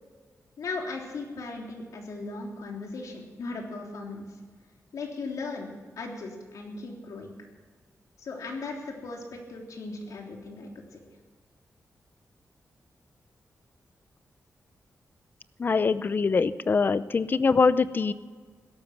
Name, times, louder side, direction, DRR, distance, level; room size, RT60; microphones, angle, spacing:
voice 1, 0.6-4.3 4.9-5.7 6.0-7.3 8.2-11.0, left 3 dB, 80° left, 1 dB, 3.3 m, -37 dB
voice 2, 15.6-18.1, left 4 dB, 35° left, 15 dB, 0.6 m, -23 dB
17.0 x 13.5 x 6.0 m, 1.5 s
wide cardioid pair, 145°, 6 cm